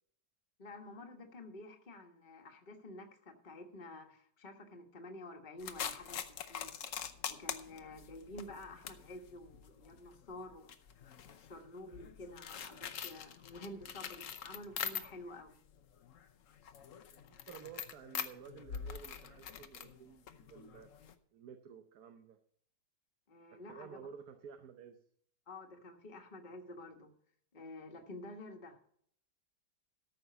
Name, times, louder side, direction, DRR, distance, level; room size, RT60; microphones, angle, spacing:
voice 1, 0.6-6.2 6.5-6.7 7.3-10.7 11.4-15.6 23.3-24.1 25.5-27.1 27.5-28.8, left 2 dB, 30° left, 2 dB, 1.4 m, -50 dB
sound 1, 5.6-15.4 15.7-21.1, left 8 dB, 60° left, 1.0 m, -44 dB
voice 2, 17.1-20.9 21.3-22.4 23.5-25.0, right 7 dB, 65° right, 7 dB, 1.3 m, -53 dB
13.5 x 5.9 x 6.8 m, 0.64 s
omnidirectional pair, 1.9 m